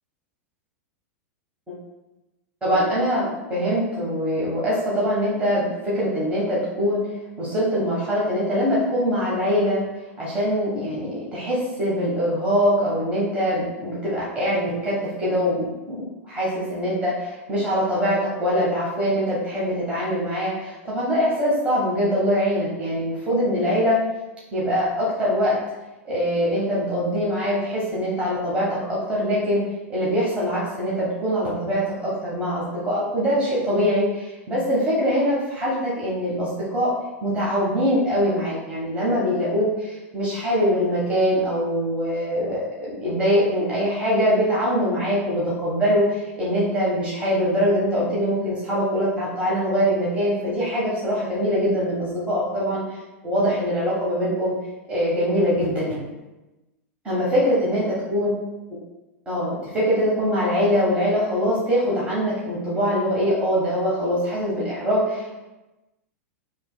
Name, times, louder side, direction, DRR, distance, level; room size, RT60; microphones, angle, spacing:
voice 1, 2.6-7.0 7.4-9.8 10.2-16.0 16.3-24.0 24.5-25.6 26.0-29.6 29.9-36.9 37.2-42.7 43.0-53.0 53.2-54.5 54.9-56.1 57.0-58.3 59.3-65.4, equal, 15° right, -7 dB, 1.2 m, -23 dB
6.8 x 3.0 x 2.2 m, 1.0 s
supercardioid pair, 135°, 8 cm